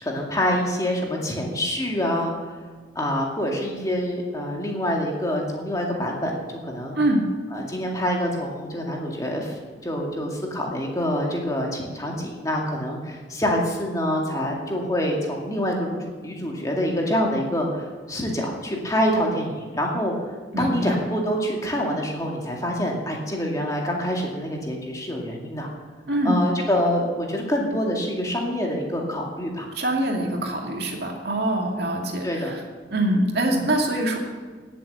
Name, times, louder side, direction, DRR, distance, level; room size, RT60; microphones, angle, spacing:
voice 1, 0.0-2.3 3.0-7.0 7.5-20.1 20.6-25.7 26.2-29.7 32.2-32.5, equal, 20° left, -1 dB, 2.2 m, -26 dB
voice 2, 20.5-21.0 26.1-26.3 29.7-32.6 32.9-34.2, right 1 dB, 60° right, 1 dB, 2.4 m, -24 dB
17.5 x 7.7 x 6.9 m, 1.5 s
head